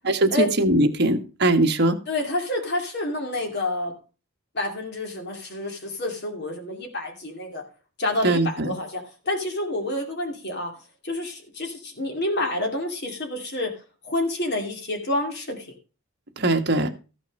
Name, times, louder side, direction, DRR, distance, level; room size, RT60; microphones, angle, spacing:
voice 1, 0.0-2.0 8.2-8.7 16.4-16.9, right 2 dB, 50° right, 4 dB, 1.5 m, -21 dB
voice 2, 2.1-3.9 4.5-7.6 8.0-10.7 11.0-13.7 14.0-15.7, left 2 dB, 50° left, 2 dB, 2.6 m, -28 dB
14.0 x 6.2 x 5.3 m, 0.34 s
head